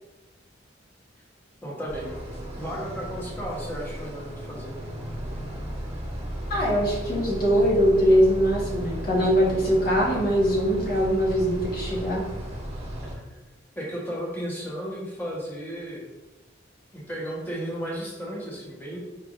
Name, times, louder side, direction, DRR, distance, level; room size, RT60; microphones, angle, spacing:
voice 1, 1.6-2.2 2.6-4.8 13.1-13.2 13.8-16.1 16.9-19.0, equal, 10° left, -5 dB, 0.9 m, -34 dB
sound 1, 1.9-13.2, equal, 35° right, 0.8 m, -35 dB
voice 2, 6.5-12.2, equal, 50° left, -4 dB, 1.1 m, -22 dB
4.8 x 3.4 x 2.4 m, 1.1 s
head